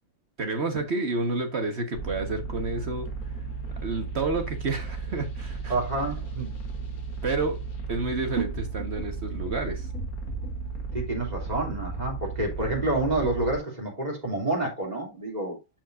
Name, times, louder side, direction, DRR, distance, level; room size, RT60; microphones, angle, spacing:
voice 1, 0.4-3.1 3.8-5.7 7.2-7.6 7.9-9.9, right 3 dB, 50° right, 1.5 m, -29 dB
sound 1, 1.9-13.6, right 4 dB, 90° left, 2.0 m, -35 dB
voice 2, 5.7-6.5 10.9-15.8, right 2 dB, 30° right, 2.9 m, -29 dB
sound 2, 8.5-12.6 12.8-13.0, equal, 70° left, 1.9 m, -41 dB
12.5 x 4.6 x 2.5 m
omnidirectional pair, 1.5 m